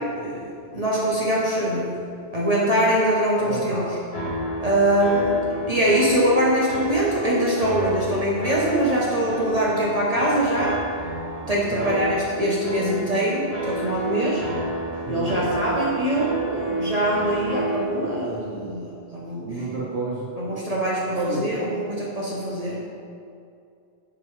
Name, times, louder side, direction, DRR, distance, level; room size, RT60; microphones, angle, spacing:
voice 1, 0.7-2.0 2.3-3.8 4.6-5.4 5.7-10.8 11.5-14.4 15.1-19.5 20.4-22.8, right 1 dB, 35° right, -6 dB, 0.9 m, -23 dB
voice 2, 3.4-3.9 11.4-12.0 15.0-15.5 19.4-20.3 21.1-21.5, right 2 dB, 65° right, -7 dB, 1.1 m, -30 dB
sound 1, 4.1-17.8, right 1 dB, 55° left, 1.9 m, -30 dB
11.0 x 3.7 x 3.3 m, 2.5 s
omnidirectional pair, 1.2 m